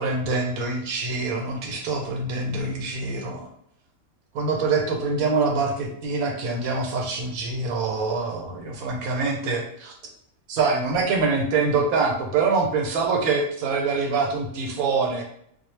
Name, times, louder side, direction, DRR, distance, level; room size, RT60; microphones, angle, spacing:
voice 1, 0.0-3.5 4.3-9.9 10.5-15.2, right 4 dB, 85° right, 0 dB, 1.0 m, -25 dB
2.3 x 2.1 x 3.0 m, 0.70 s
omnidirectional pair, 1.5 m